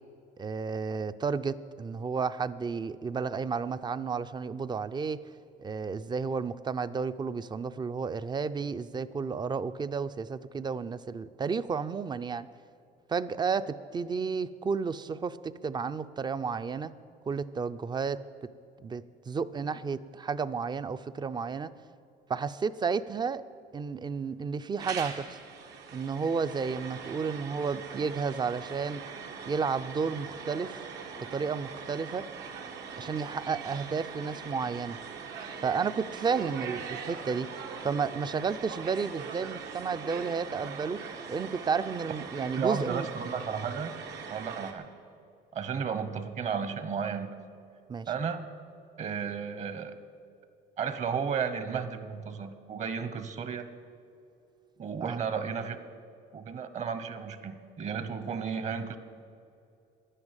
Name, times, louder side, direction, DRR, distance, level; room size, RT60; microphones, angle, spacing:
voice 1, 0.4-5.2 5.6-12.5 13.1-16.9 17.3-18.2 18.8-21.7 22.3-23.4 23.7-25.4 25.9-29.0 29.5-30.8 31.2-32.3 33.0-35.0 35.6-37.5 37.8-41.0 41.3-43.1 47.9-48.1 55.0-55.2, right 5 dB, 25° right, 13 dB, 0.4 m, -32 dB
sound 1, 24.8-44.7, right 6 dB, 80° right, 1.5 m, -41 dB
voice 2, 42.6-43.9 44.3-44.9 45.5-47.4 48.1-48.5 49.0-50.0 50.8-53.7 54.8-55.8 56.3-59.0, right 6 dB, 45° right, 10 dB, 1.1 m, -33 dB
11.0 x 9.9 x 9.0 m, 2.4 s
cardioid pair, 110°, 17 cm